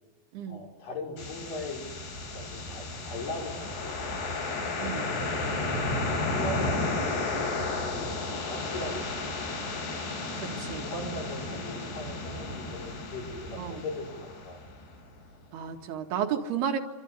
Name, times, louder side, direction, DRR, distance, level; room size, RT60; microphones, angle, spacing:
voice 1, 0.5-1.9 2.3-4.1 6.0-9.5 10.7-14.6, left 2 dB, 55° left, -1 dB, 8.1 m, -39 dB
sound 1, 1.2-15.0, left 2 dB, 90° left, 8.0 m, -33 dB
voice 2, 4.8-5.1 10.4-10.9 13.6-13.8 15.5-16.8, right 8 dB, 80° right, 4 dB, 3.8 m, -32 dB
26.5 x 25.0 x 8.3 m, 1.1 s
omnidirectional pair, 4.6 m